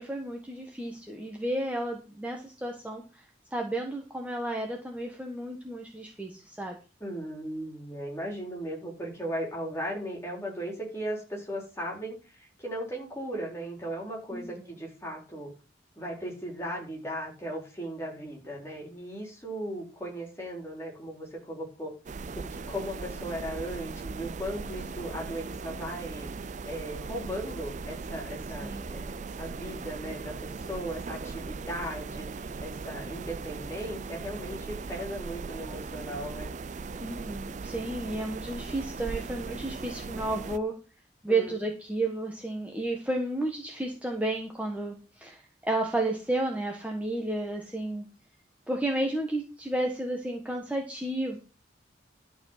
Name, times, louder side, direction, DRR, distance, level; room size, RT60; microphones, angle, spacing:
voice 1, 0.0-3.2 3.5-6.7 14.3-14.7 28.6-29.0 37.0-40.7 41.2-48.1 48.7-51.4, right 2 dB, 10° right, 1 dB, 1.4 m, -32 dB
voice 2, 7.0-15.5 16.0-21.9 22.3-36.5 41.3-41.4, equal, 15° left, -1 dB, 4.1 m, -37 dB
sound 1, 22.1-40.6, right 4 dB, 40° right, 0.4 m, -39 dB
12.0 x 4.8 x 7.4 m, 0.34 s
head